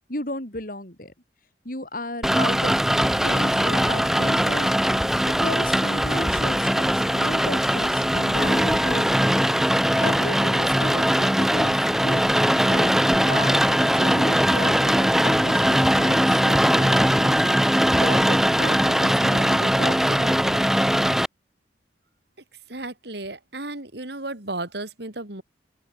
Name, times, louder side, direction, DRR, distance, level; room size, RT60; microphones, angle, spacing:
voice 1, 0.1-1.1 1.6-2.8 3.2-4.7 5.3-9.5 10.0-12.4 12.7-20.7, left 1 dB, 45° left, 5.1 m, -34 dB
Rain, 2.2-21.3, equal, ahead, 0.9 m, -20 dB
voice 2, 22.7-25.4, right 2 dB, 60° right, 3.4 m, -34 dB
open air
head